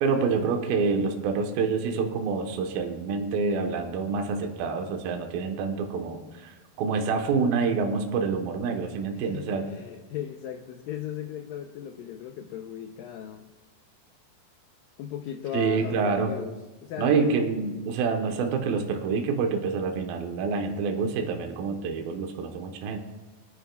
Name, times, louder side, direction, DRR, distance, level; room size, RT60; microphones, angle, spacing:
voice 1, 0.0-9.7 15.5-16.4 17.0-23.0, right 5 dB, 70° right, 4 dB, 2.7 m, -27 dB
voice 2, 9.2-13.5 15.0-17.4, left 10 dB, 80° left, 4 dB, 2.0 m, -37 dB
25.0 x 9.8 x 2.3 m, 1.2 s
omnidirectional pair, 4.8 m